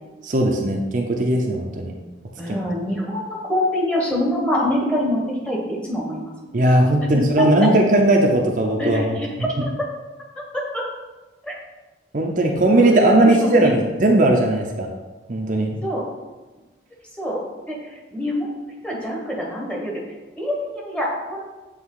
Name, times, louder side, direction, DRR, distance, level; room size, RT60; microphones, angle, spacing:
voice 1, 0.2-1.9 2.5-2.6 6.5-9.5 12.1-14.9 15.3-15.8, right 1 dB, 45° right, 0 dB, 0.6 m, -18 dB
voice 2, 2.4-6.5 7.1-7.7 8.8-9.3 9.6-9.7 11.4-11.5 13.0-13.7 15.8-16.0 17.2-17.4 17.7-17.8 18.1-18.5 18.8-20.0 20.4-21.4, equal, 5° left, -3 dB, 1.1 m, -25 dB
8.0 x 3.4 x 3.8 m, 1.2 s
head